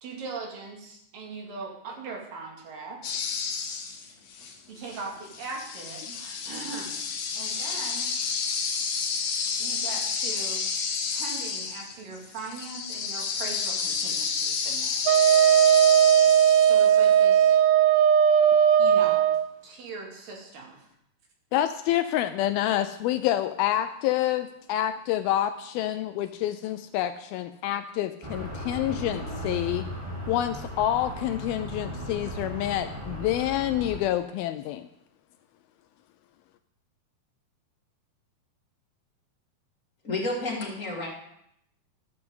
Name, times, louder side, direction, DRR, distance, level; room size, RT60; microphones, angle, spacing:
voice 1, 0.0-3.2 4.4-7.0 7.3-8.1 9.6-10.9 11.1-15.2 16.6-17.7 18.8-19.3 19.6-20.9, right 4 dB, 60° right, 0 dB, 3.6 m, -40 dB
sound 1, 3.0-4.5 4.8-17.2, left 5 dB, 65° left, 2.5 m, -31 dB
Wind instrument woodwind instrument, 15.1-19.5, right 9 dB, 80° right, 2.1 m, -18 dB
voice 2, 21.5-29.9 30.3-34.9, left 12 dB, 80° left, 10 dB, 2.2 m, -27 dB
sound 2, 28.2-34.0, equal, 15° right, 0.9 m, -36 dB
voice 3, 40.0-41.1, left 2 dB, 25° left, -2 dB, 1.9 m, -30 dB
13.5 x 12.5 x 3.8 m, 0.76 s
omnidirectional pair, 4.7 m